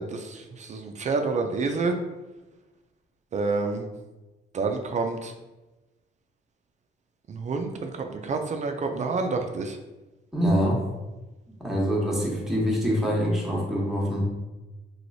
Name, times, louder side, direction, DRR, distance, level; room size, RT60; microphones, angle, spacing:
voice 1, 0.0-2.0 3.3-3.9 4.5-5.3 7.3-9.8, right 4 dB, 35° right, 4 dB, 0.4 m, -28 dB
voice 2, 10.3-10.8 11.6-14.2, equal, ahead, -4 dB, 1.0 m, -25 dB
3.1 x 3.0 x 2.6 m, 1.1 s
cardioid pair, 90°, 20 cm